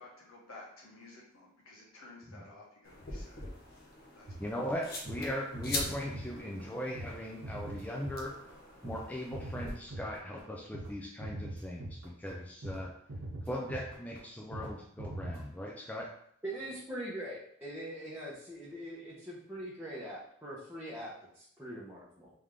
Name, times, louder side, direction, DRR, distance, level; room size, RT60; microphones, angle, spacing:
voice 1, 0.0-3.5 4.1-4.6, left 2 dB, 85° left, -3 dB, 1.4 m, -53 dB
sound 1, 2.8-9.7, left 2 dB, 45° left, 0.8 m, -43 dB
sound 2, 4.3-10.9 11.2-12.3 12.6-12.8 13.1-14.2 14.5-14.7 15.0-15.4, right 1 dB, 65° right, 0.8 m, -43 dB
voice 2, 4.4-8.3 8.8-12.9 13.5-16.1, left 1 dB, 5° left, -2 dB, 0.4 m, -39 dB
voice 3, 16.4-22.3, right 1 dB, 10° right, -9 dB, 0.8 m, -42 dB
3.5 x 3.3 x 3.6 m, 0.67 s
head